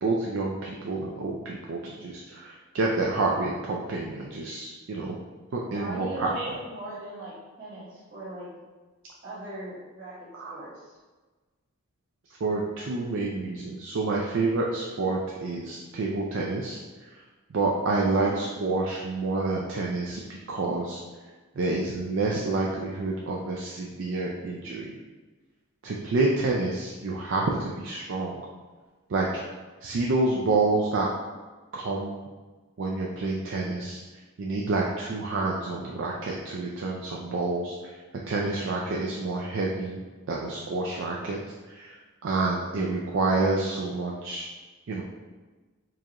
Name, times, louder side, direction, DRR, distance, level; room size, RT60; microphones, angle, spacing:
voice 1, 0.0-5.2 5.5-6.5 10.3-10.6 12.4-16.8 17.5-21.0 21.6-24.9 25.8-28.4 29.1-29.4 29.8-31.1 31.7-32.2 32.8-34.0 34.4-37.8 38.3-40.0 40.3-41.4 41.7-42.0 42.2-44.5 44.9-45.0, right 3 dB, 60° right, -2 dB, 0.4 m, -28 dB
voice 2, 5.7-8.5 9.2-11.0 18.1-18.7, right 1 dB, 40° right, -14 dB, 1.1 m, -40 dB
4.6 x 2.5 x 2.9 m, 1.3 s
head